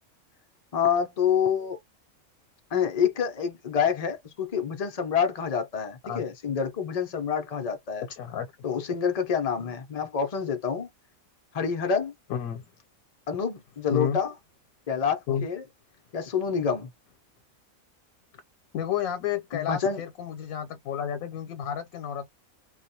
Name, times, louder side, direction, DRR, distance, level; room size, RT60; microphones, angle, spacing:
voice 1, 0.7-1.8 2.7-8.0 8.6-10.9 11.5-12.1 13.3-14.3 14.9-15.6 16.1-16.9 19.5-20.0, left 7 dB, 55° left, 0.4 m, -27 dB
voice 2, 8.1-8.5 12.3-12.7 13.9-14.2 15.3-15.4 18.7-22.3, left 8 dB, 90° left, 1.0 m, -31 dB
2.3 x 2.2 x 2.7 m
omnidirectional pair, 1.4 m